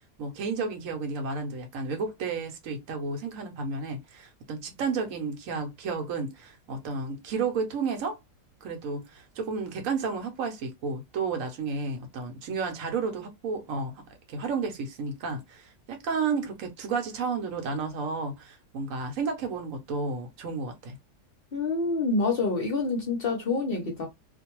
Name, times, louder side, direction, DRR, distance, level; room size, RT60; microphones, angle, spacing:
voice 1, 0.2-8.2 8.6-14.0 14.3-21.0, right 4 dB, 70° right, 1.0 m, -32 dB
voice 2, 21.5-24.1, left 3 dB, 55° left, 0.7 m, -27 dB
2.5 x 2.1 x 2.9 m
omnidirectional pair, 1.5 m